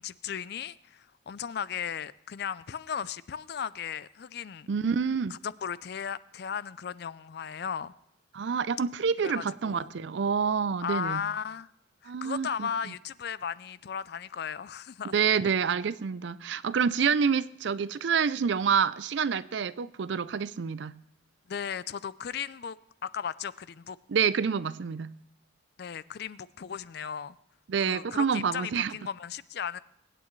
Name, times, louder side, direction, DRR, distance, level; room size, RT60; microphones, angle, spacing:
voice 1, 0.0-4.7 5.4-7.9 9.2-9.9 10.8-11.7 12.0-15.1 21.5-22.8 23.0-24.0 25.8-27.4 27.9-29.8, left 7 dB, 55° left, 0.4 m, -36 dB
voice 2, 4.7-5.3 8.3-11.2 12.1-12.7 15.0-21.0 24.1-25.1 27.7-29.0, right 6 dB, 65° right, 0.4 m, -27 dB
23.5 x 8.8 x 3.2 m
head